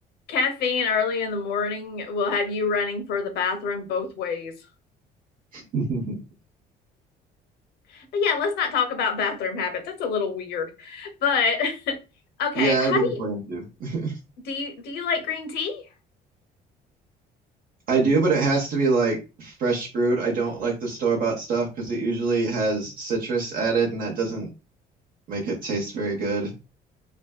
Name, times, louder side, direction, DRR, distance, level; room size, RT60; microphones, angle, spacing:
voice 1, 0.3-4.5 7.9-12.0 12.4-13.2 14.5-15.8, left 5 dB, 70° left, 0.6 m, -26 dB
voice 2, 5.5-6.2 12.6-14.1 17.9-24.5 25.3-26.5, right 3 dB, 55° right, 0.7 m, -25 dB
2.5 x 2.3 x 2.2 m
cardioid pair, 110°, 17 cm